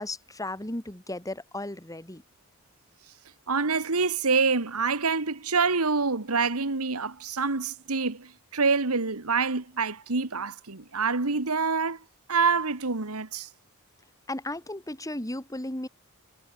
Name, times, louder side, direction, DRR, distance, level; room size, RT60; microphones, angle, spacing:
voice 1, 0.0-2.2 14.3-15.9, left 1 dB, 15° left, 3.0 m, -35 dB
voice 2, 3.5-12.0 12.3-13.5, right 4 dB, 80° right, 1.8 m, -26 dB
head